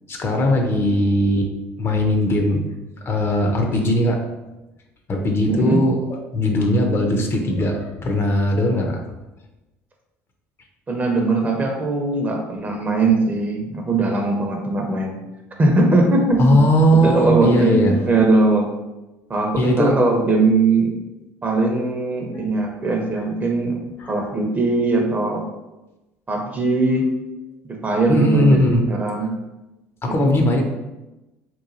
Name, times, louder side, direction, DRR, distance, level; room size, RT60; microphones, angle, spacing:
voice 1, 0.1-1.5 1.8-2.6 3.1-4.2 5.1-6.0 6.3-9.0 16.4-18.0 19.6-20.0 22.6-22.7 24.0-24.1 28.1-28.8 30.0-30.6, equal, 35° left, 2 dB, 0.5 m, -19 dB
voice 2, 5.5-5.9 10.9-15.2 15.6-16.6 16.9-18.7 19.3-21.0 21.4-25.4 26.3-27.1 27.7-29.3 30.0-30.6, right 2 dB, 25° right, 1 dB, 0.6 m, -20 dB
2.9 x 2.2 x 2.6 m, 1.0 s
hypercardioid pair, 70°, 7 cm